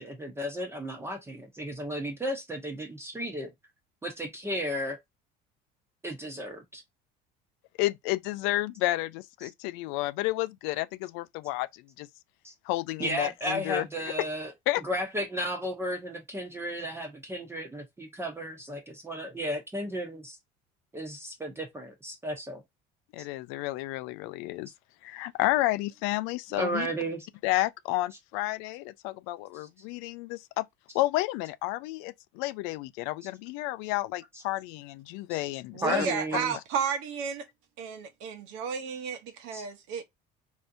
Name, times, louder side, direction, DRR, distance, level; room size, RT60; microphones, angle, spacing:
voice 1, 0.0-3.5 4.0-5.0 6.0-6.8 12.4-12.5 13.0-14.5 14.8-20.4 20.9-22.6 26.5-27.3 35.3-35.4 35.8-36.5 39.5-39.6, equal, 10° right, 0.7 m, -34 dB
voice 2, 7.8-12.1 12.6-13.9 14.2-14.3 14.7-14.8 23.1-24.7 25.0-26.9 27.4-30.6 30.9-36.1, left 18 dB, 80° left, 0.4 m, -31 dB
voice 3, 35.7-37.5 37.8-40.0, right 6 dB, 75° right, 0.9 m, -32 dB
3.4 x 2.7 x 2.6 m
cardioid pair, 135°, 20 cm